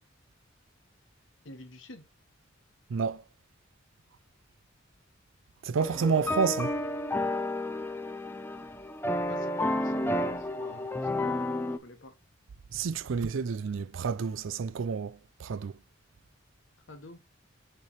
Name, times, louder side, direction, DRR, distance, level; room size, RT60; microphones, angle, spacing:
voice 1, 1.4-2.1 9.3-11.5 11.8-12.1 16.9-17.2, left 1 dB, 65° left, 1.2 m, -47 dB
voice 2, 2.9-3.2 5.6-6.7 12.7-15.7, right 5 dB, 70° right, 0.4 m, -30 dB
sound 1, 5.8-11.8, left 1 dB, 10° left, 0.4 m, -31 dB
6.7 x 3.3 x 4.2 m
head